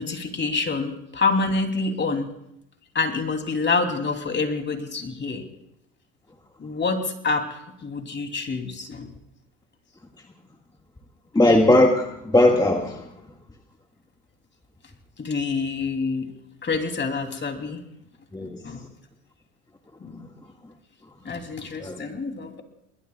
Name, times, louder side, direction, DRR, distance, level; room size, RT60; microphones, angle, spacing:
voice 1, 0.0-2.3 2.9-5.4 6.6-9.1 15.2-16.3 16.6-17.8 18.6-18.8 20.0-20.2 21.2-22.6, left 4 dB, 30° left, 5 dB, 3.0 m, -27 dB
voice 2, 11.4-13.0 18.3-18.6 21.8-22.0, left 1 dB, 10° left, 1 dB, 1.9 m, -18 dB
29.0 x 21.0 x 2.4 m, 0.78 s
supercardioid pair, 85°, 38 cm